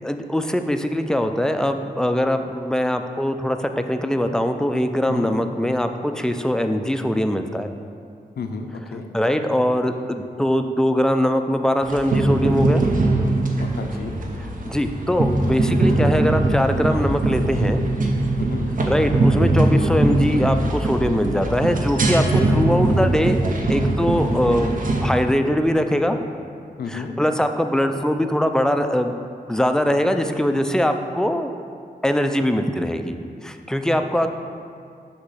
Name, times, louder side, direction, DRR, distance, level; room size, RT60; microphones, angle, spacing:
voice 1, 0.0-7.7 9.1-12.8 14.7-17.8 18.9-23.4 23.7-24.8 25.0-26.2 26.9-29.1 29.5-31.5 32.0-33.2 33.4-34.3, equal, 5° left, 7 dB, 0.3 m, -22 dB
voice 2, 5.1-5.4 8.4-9.1 13.6-14.2 18.4-18.7 24.3-24.5 26.8-27.2 33.9-34.0, left 5 dB, 75° left, 5 dB, 0.5 m, -32 dB
sound 1, 11.8-25.1, right 2 dB, 55° right, 0.7 m, -21 dB
6.2 x 3.0 x 5.6 m, 2.3 s
cardioid pair, 55°, 16 cm